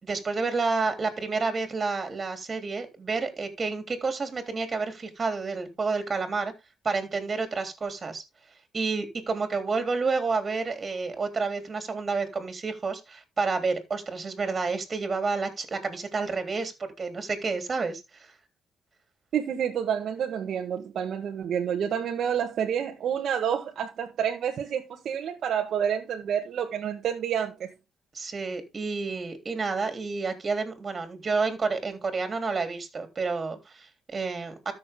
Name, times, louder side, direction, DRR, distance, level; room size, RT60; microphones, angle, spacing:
voice 1, 0.0-6.5 6.8-8.2 8.7-18.3 28.1-34.7, right 4 dB, 35° right, 3.5 m, -30 dB
voice 2, 19.3-27.7, right 8 dB, 65° right, 1.5 m, -29 dB
13.0 x 6.8 x 3.7 m
cardioid pair, 90°, 0 cm